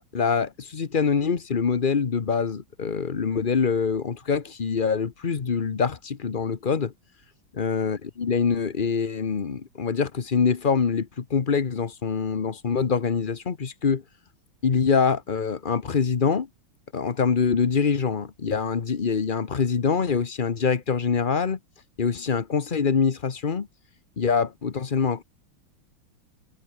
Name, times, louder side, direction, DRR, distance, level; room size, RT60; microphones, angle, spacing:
voice 1, 0.0-6.9 7.6-14.0 14.6-16.5 16.9-21.6 22.0-23.7 24.2-25.2, left 5 dB, 35° left, 0.8 m, -24 dB
omnidirectional pair, 2.2 m